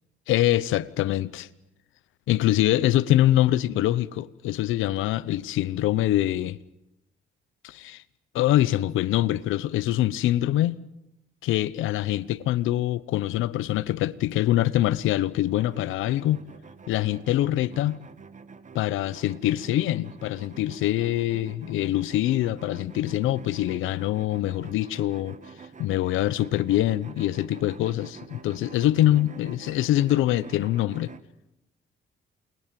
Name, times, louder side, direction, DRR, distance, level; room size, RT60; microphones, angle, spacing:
voice 1, 0.3-1.5 2.3-6.6 7.6-8.0 8.3-10.8 11.4-16.4 16.9-18.0 18.7-25.4 25.8-31.1, left 14 dB, 90° left, 1.0 m, -24 dB
sound 1, 15.5-31.2, right 5 dB, 40° right, 1.9 m, -47 dB
29.0 x 21.0 x 7.7 m
cardioid pair, 90°, 20 cm